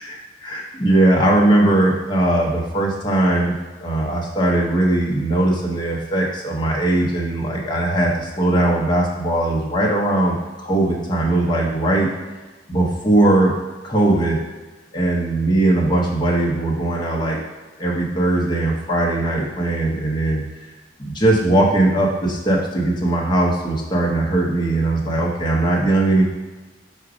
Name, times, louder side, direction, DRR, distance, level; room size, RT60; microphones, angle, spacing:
voice 1, 0.0-3.5 3.8-12.1 12.7-13.5 13.8-14.4 14.9-17.4 17.8-20.4 21.0-26.2, right 2 dB, 25° left, -3 dB, 0.8 m, -19 dB
4.9 x 2.2 x 4.8 m, 1.2 s
head